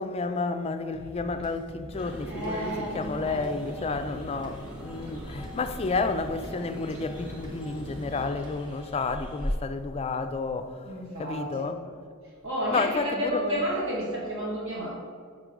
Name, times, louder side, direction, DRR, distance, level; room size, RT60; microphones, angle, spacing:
voice 1, 0.0-10.8 11.2-11.8 12.7-13.6, left 3 dB, 30° left, 0.4 m, -31 dB
sound 1, 0.9-8.9, equal, 20° right, 0.9 m, -46 dB
sound 2, 1.9-8.2, right 1 dB, 90° right, 1.4 m, -43 dB
sound 3, 2.0-9.5, left 1 dB, 5° right, 1.1 m, -41 dB
voice 2, 2.3-3.7 10.9-11.7 12.4-14.9, equal, 65° right, 1.0 m, -31 dB
5.3 x 5.2 x 4.8 m
head